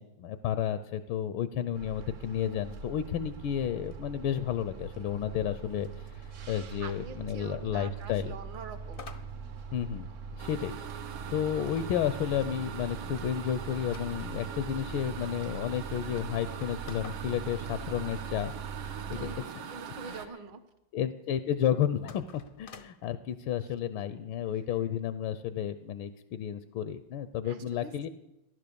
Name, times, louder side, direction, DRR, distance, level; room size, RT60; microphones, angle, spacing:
voice 1, 0.0-8.4 9.7-10.1 10.4-10.7 11.3-18.5 19.1-19.7 20.1-20.2 20.9-22.2 22.6-28.1, left 9 dB, 80° left, 12 dB, 1.4 m, -32 dB
sound 1, 1.7-19.4, right 6 dB, 55° right, 0.9 m, -42 dB
voice 2, 6.8-9.0 19.1-20.6 27.4-28.1, right 4 dB, 70° right, 9 dB, 1.8 m, -45 dB
sound 2, 8.9-10.5 11.7-14.6 15.3-15.4 15.6-15.7 16.3-18.5 21.9-23.1, left 5 dB, 55° left, 0.6 m, -51 dB
sound 3, 10.4-20.3, right 7 dB, 85° right, 1.7 m, -42 dB
14.5 x 11.0 x 6.8 m, 0.89 s
omnidirectional pair, 2.2 m